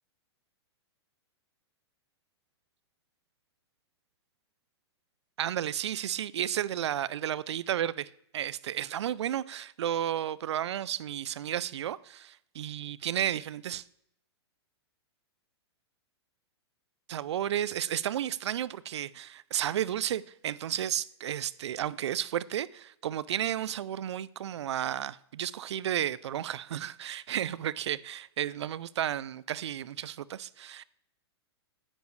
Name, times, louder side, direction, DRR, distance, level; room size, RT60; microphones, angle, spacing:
voice 1, 5.4-13.8 17.1-30.8, right 11 dB, 80° right, 0.4 m, -33 dB
9.7 x 8.1 x 3.2 m
hypercardioid pair, 120°, 14 cm